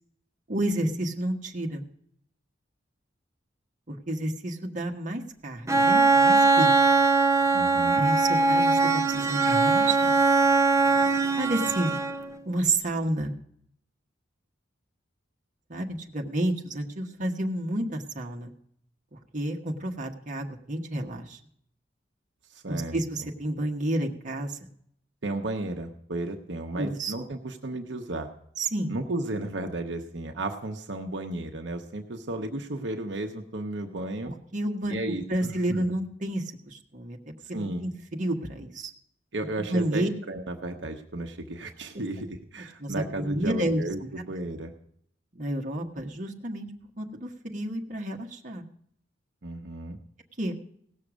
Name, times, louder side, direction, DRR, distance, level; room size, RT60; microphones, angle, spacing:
voice 1, 0.5-1.8 3.9-6.7 8.0-10.2 11.4-12.0 12.4-13.3 15.7-18.5 19.1-21.4 22.7-24.6 26.7-27.2 28.6-28.9 34.2-37.2 37.5-38.9 39.6-40.1 41.9-42.0 42.8-43.8 45.3-46.7 47.0-48.6 50.4-50.5, right 1 dB, 45° right, 1 dB, 1.3 m, -30 dB
Bowed string instrument, 5.7-12.4, right 3 dB, 15° right, 0.6 m, -21 dB
voice 2, 7.5-8.1 22.5-23.3 25.2-28.3 28.9-34.3 34.9-35.9 37.5-37.9 39.3-44.7 49.4-50.0, right 2 dB, 75° right, 4 dB, 1.0 m, -34 dB
17.5 x 6.6 x 6.2 m, 0.67 s
head